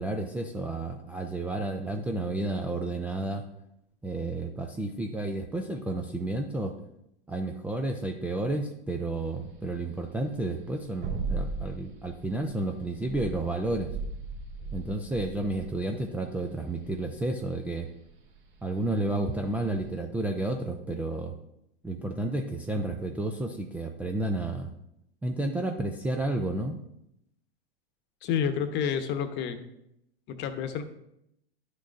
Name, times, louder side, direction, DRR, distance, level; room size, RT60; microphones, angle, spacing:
voice 1, 0.0-3.4 4.0-6.8 7.3-13.9 14.7-17.9 18.6-21.4 21.8-24.7 25.2-26.8, right 2 dB, 5° right, 3 dB, 0.4 m, -31 dB
sound 1, 9.1-20.0, right 3 dB, 35° right, 2.9 m, -38 dB
voice 2, 28.2-29.6 30.3-30.8, left 8 dB, 35° left, 9 dB, 1.0 m, -29 dB
11.0 x 6.4 x 2.5 m, 0.80 s
hypercardioid pair, 110°, 31 cm